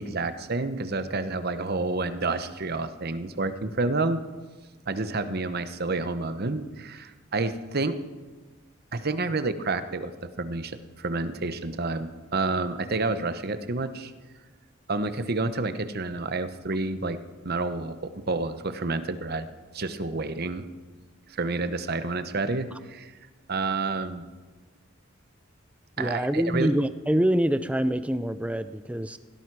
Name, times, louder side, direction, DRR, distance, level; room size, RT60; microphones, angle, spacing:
voice 1, 0.0-4.2 4.9-8.0 8.9-10.1 10.4-14.1 14.9-17.2 17.4-19.5 19.7-20.6 21.3-23.1 23.5-24.3 26.0-26.8, right 3 dB, 50° right, 11 dB, 1.0 m, -29 dB
voice 2, 26.0-29.2, equal, 5° right, 12 dB, 0.5 m, -25 dB
18.0 x 16.5 x 4.8 m, 1.3 s
head